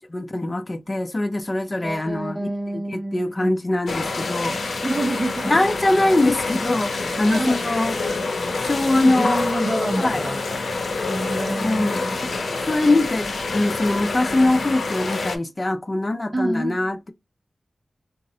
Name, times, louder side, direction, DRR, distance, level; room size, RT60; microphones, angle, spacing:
voice 1, 0.1-2.5 2.7-4.8 5.5-8.0 8.6-9.4 10.0-10.2 11.6-12.3 12.6-17.1, left 2 dB, 35° left, 0.5 m, -22 dB
voice 2, 1.8-3.5 4.8-5.5 7.2-7.6 8.9-10.6 11.1-12.2 12.7-12.8 16.3-16.8, right 1 dB, 35° right, 0.6 m, -28 dB
sound 1, 3.9-15.4, left 3 dB, 90° left, 0.6 m, -27 dB
3.7 x 2.0 x 2.6 m
wide cardioid pair, 65°, 0 cm